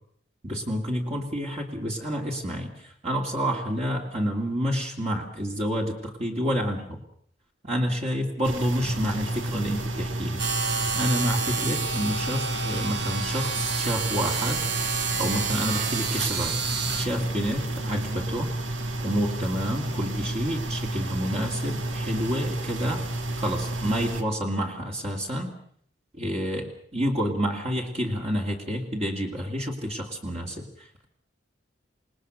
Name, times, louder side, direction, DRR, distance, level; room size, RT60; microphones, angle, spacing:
voice 1, 0.4-7.0 7.6-10.4 10.9-14.6 15.2-16.6 17.0-18.5 19.0-23.1 23.3-25.5 26.1-31.0, equal, 35° right, 0 dB, 2.6 m, -29 dB
sound 1, 8.4-24.2, right 1 dB, 90° right, 1.9 m, -31 dB
sound 2, 10.4-17.1, right 5 dB, 65° right, 2.0 m, -29 dB
27.5 x 19.5 x 6.4 m, 0.62 s
head